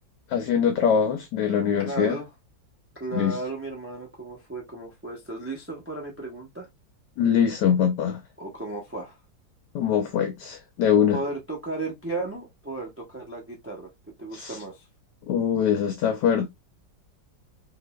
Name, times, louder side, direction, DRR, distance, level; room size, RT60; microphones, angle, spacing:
voice 1, 0.3-2.2 3.1-3.4 7.2-8.2 9.7-11.2 14.3-14.6 15.3-16.5, left 8 dB, 75° left, 1.2 m, -23 dB
voice 2, 1.8-2.3 2.9-6.7 8.4-9.1 11.1-13.9 14.2-14.8, right 2 dB, 15° right, 0.5 m, -34 dB
3.9 x 3.2 x 2.3 m
omnidirectional pair, 2.0 m